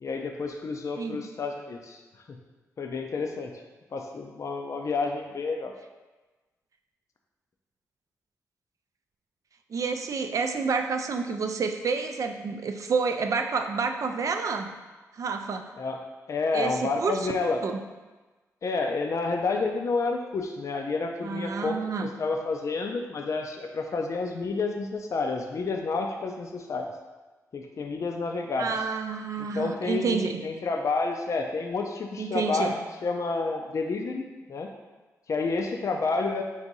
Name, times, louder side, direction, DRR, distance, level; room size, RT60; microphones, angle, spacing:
voice 1, 0.0-2.0 2.3-2.4 2.8-3.5 3.9-5.7 15.8-16.0 16.3-17.6 18.6-26.9 27.5-28.8 29.4-32.8 33.0-34.2 34.5-34.7 35.3-36.4, left 3 dB, 55° left, 3 dB, 0.4 m, -29 dB
voice 2, 1.0-1.3 9.7-14.7 15.1-15.7 16.5-17.3 17.6-17.8 21.2-22.1 28.6-30.4 32.2-32.8, right 5 dB, 60° right, 5 dB, 0.4 m, -29 dB
4.7 x 2.6 x 3.9 m, 1.2 s
cardioid pair, 60°, 6 cm